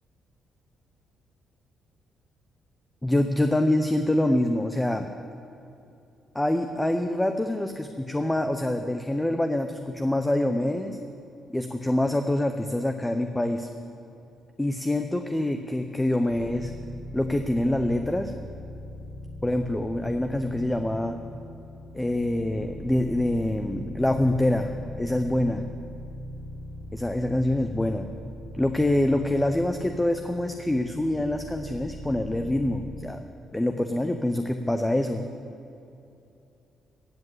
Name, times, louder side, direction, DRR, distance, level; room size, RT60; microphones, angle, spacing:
voice 1, 3.0-5.1 6.3-11.0 11.5-13.7 14.6-16.7 17.1-18.3 19.4-21.2 21.9-24.7 25.0-25.6 26.9-28.1 28.5-33.2 33.5-35.2, left 1 dB, 10° left, 6 dB, 0.7 m, -25 dB
sound 1, 16.3-33.0, left 1 dB, 45° right, 2.1 m, -40 dB
15.5 x 7.5 x 8.0 m, 2.7 s
cardioid pair, 90°, 0 cm